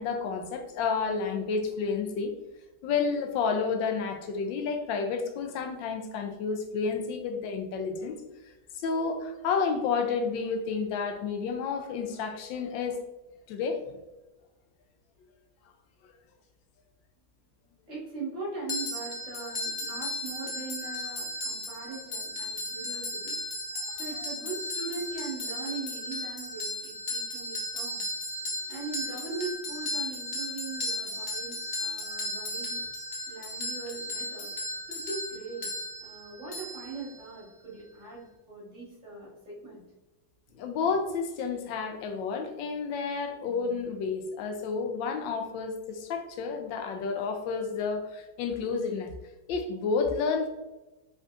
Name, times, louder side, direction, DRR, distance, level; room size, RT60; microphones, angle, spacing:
voice 1, 0.0-2.3 2.8-8.2 8.7-13.0 13.5-13.9 23.8-23.9 24.2-24.3 40.5-49.1 49.5-50.5, left 5 dB, 90° left, 6 dB, 1.4 m, -30 dB
voice 2, 17.9-23.4 23.9-28.0 28.7-32.8 33.3-34.5 34.9-35.7 36.0-39.8, right 3 dB, 45° right, -6 dB, 1.9 m, -40 dB
sound 1, 18.7-37.5, left 1 dB, 50° left, 1.2 m, -35 dB
5.2 x 3.7 x 2.4 m, 1.0 s
omnidirectional pair, 2.0 m